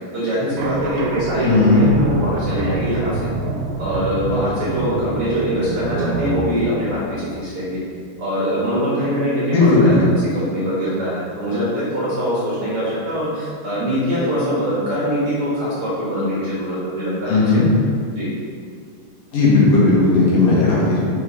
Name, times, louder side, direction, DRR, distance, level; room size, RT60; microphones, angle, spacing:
voice 1, 0.1-3.3 3.8-7.8 8.2-17.4 17.7-17.8 18.1-18.3, equal, 45° right, -9 dB, 2.3 m, -23 dB
sound 1, 0.6-8.0, right 4 dB, 85° right, 2.8 m, -26 dB
voice 2, 1.4-1.8 9.5-10.1 17.3-17.6 19.3-21.0, left 3 dB, 65° left, -6 dB, 3.1 m, -15 dB
6.9 x 5.4 x 5.1 m, 2.2 s
omnidirectional pair, 4.4 m